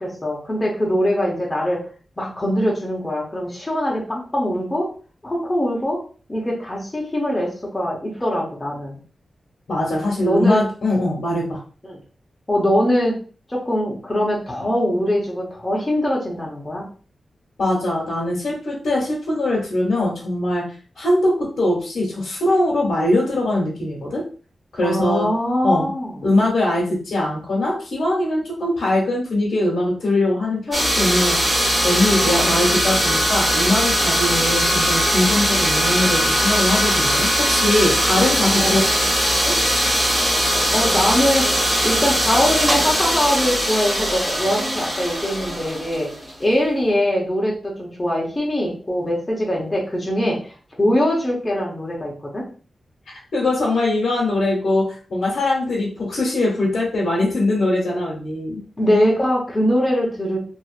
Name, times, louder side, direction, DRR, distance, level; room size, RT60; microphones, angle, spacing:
voice 1, 0.0-1.9 2.2-4.9 5.2-6.0 6.3-9.0 10.2-10.6 11.9-12.0 12.5-13.2 13.5-16.8 24.8-26.1 32.3-32.7 34.2-34.5 38.2-38.8 40.7-46.1 46.4-52.5 58.8-60.4, equal, 20° left, -2 dB, 0.9 m, -22 dB
voice 2, 9.7-11.6 17.6-20.6 20.9-24.2 24.7-25.3 25.6-25.9 26.2-38.8 53.3-58.6, left 1 dB, 75° left, -4 dB, 1.2 m, -21 dB
sound 1, 30.7-46.4, equal, 10° right, 1.5 m, -20 dB
3.0 x 2.6 x 2.4 m, 0.39 s
wide cardioid pair, 125°, 0 cm